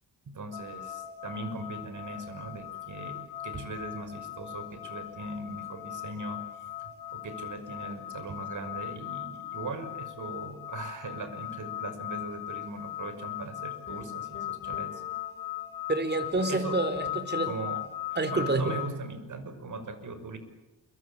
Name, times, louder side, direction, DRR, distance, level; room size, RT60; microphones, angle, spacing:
voice 1, 0.3-6.4 6.8-15.0 16.5-16.8 17.4-17.8 18.3-20.4, right 2 dB, 55° right, 10 dB, 5.7 m, -39 dB
sound 1, 0.5-18.9, left 13 dB, 65° left, 2.4 m, -39 dB
sound 2, 13.9-15.7 16.2-17.8, left 4 dB, 35° left, 5.3 m, -49 dB
voice 2, 15.9-17.5 18.2-18.8, right 2 dB, 30° right, 11 dB, 4.5 m, -28 dB
28.0 x 23.5 x 8.8 m, 0.97 s
cardioid pair, 85°, 36 cm